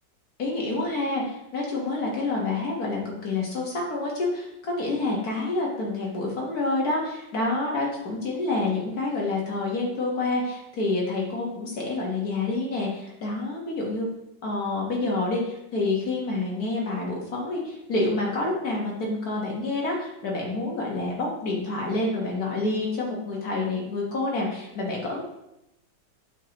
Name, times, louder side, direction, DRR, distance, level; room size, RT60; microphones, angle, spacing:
voice 1, 0.4-14.1 14.4-25.2, left 2 dB, 60° left, -2 dB, 1.6 m, -28 dB
7.6 x 5.3 x 2.9 m, 0.89 s
omnidirectional pair, 1.9 m